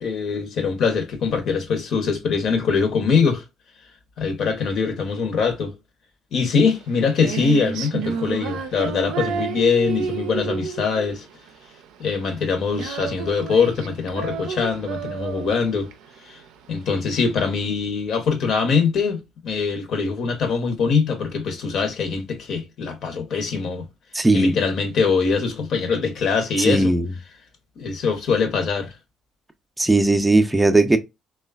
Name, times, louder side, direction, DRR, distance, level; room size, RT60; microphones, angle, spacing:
voice 1, 0.0-3.4 4.2-5.7 6.3-11.2 12.0-15.9 16.2-16.4 16.7-23.9 24.3-26.9 27.8-28.9, left 5 dB, 65° left, 0.8 m, -23 dB
Female singing, 6.7-17.6, right 6 dB, 85° right, 0.4 m, -31 dB
voice 2, 24.1-24.6 26.6-27.0 29.8-31.0, right 2 dB, 15° right, 0.4 m, -17 dB
3.1 x 2.2 x 2.2 m
supercardioid pair, 75°, 0 cm